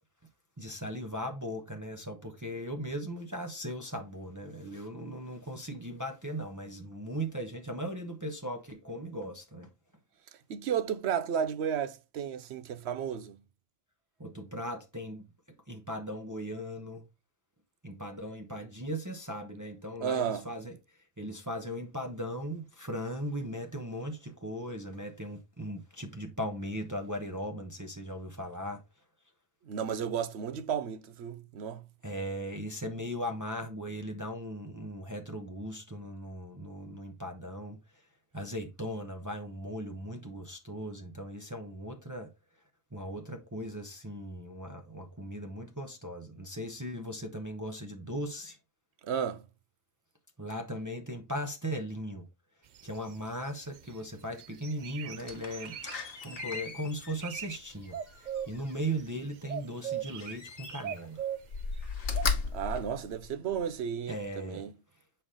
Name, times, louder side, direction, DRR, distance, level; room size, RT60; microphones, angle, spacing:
voice 1, 0.6-9.7 14.2-15.3 15.7-17.1 17.8-20.8 21.2-28.8 32.0-37.8 38.3-42.3 42.9-48.6 50.4-52.3 52.8-55.8 56.2-61.2 64.1-64.7, equal, 20° right, 0.8 m, -38 dB
voice 2, 10.5-13.4 20.0-20.5 29.7-31.8 49.0-49.4 62.5-64.7, right 8 dB, 80° right, 0.9 m, -33 dB
sound 1, 52.7-54.0 54.4-56.0 56.4-56.7 57.1-57.6 57.8-59.1 59.5-61.6 62.2-62.3, right 9 dB, 55° right, 0.5 m, -39 dB
Slam, 55.2-59.0 60.1-61.1 61.4-63.7 64.2-64.3, left 5 dB, 60° left, 1.2 m, -37 dB
6.7 x 4.4 x 3.7 m
omnidirectional pair, 1.1 m